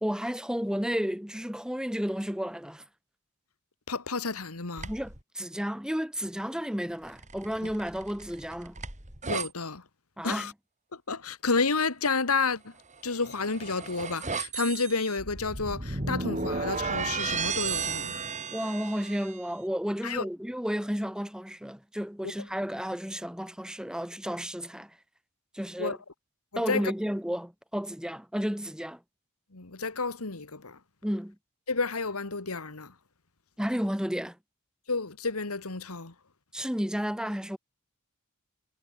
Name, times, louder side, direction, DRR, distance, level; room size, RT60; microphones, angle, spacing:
voice 1, 0.0-2.8 4.9-8.8 10.2-10.5 18.5-24.9 25.5-26.0 26.6-29.0 31.0-31.4 33.6-34.4 36.5-37.6, equal, 5° right, 2.7 m, -32 dB
voice 2, 3.9-4.9 9.3-9.8 10.2-10.5 11.1-12.7 13.0-18.2 20.0-20.3 25.8-26.0 26.5-26.8 29.5-30.8 31.7-32.9 34.9-36.1, left 4 dB, 75° left, 2.0 m, -30 dB
sound 1, 4.8-5.2 7.1-9.5 13.0-19.4, right 4 dB, 35° right, 3.8 m, -34 dB
head